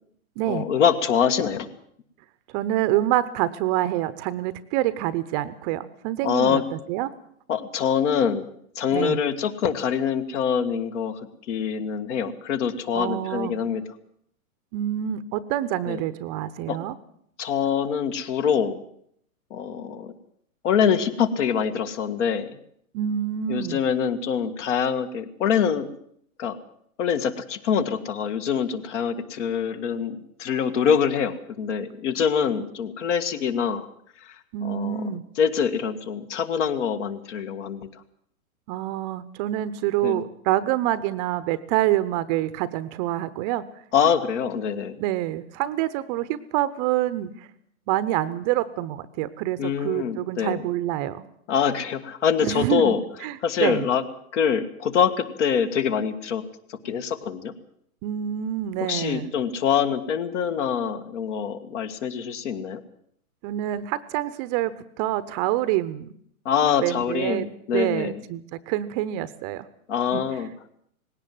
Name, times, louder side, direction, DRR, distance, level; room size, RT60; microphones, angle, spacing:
voice 1, 0.5-1.7 6.2-6.6 7.5-8.5 8.8-11.2 11.5-13.8 15.9-16.0 16.7-16.8 17.4-18.8 19.5-20.1 20.6-22.5 23.5-25.9 26.4-26.6 27.0-33.9 34.6-35.0 35.4-37.9 40.0-40.2 43.9-45.0 49.6-50.7 51.5-53.0 53.4-54.0 54.3-56.4 56.8-57.5 58.9-62.8 66.5-68.2 69.9-70.5, left 7 dB, 55° left, 10 dB, 2.0 m, -24 dB
voice 2, 2.5-7.1 8.9-9.2 12.9-13.6 14.7-16.9 22.9-23.8 34.5-35.2 38.7-43.6 45.0-47.3 47.9-51.3 52.4-53.0 53.2-53.9 58.0-59.3 63.4-66.1 66.8-67.5 67.7-69.7 70.1-70.2, right 13 dB, 30° right, 15 dB, 0.8 m, -26 dB
19.5 x 17.0 x 7.8 m, 0.68 s
hypercardioid pair, 135°, 43 cm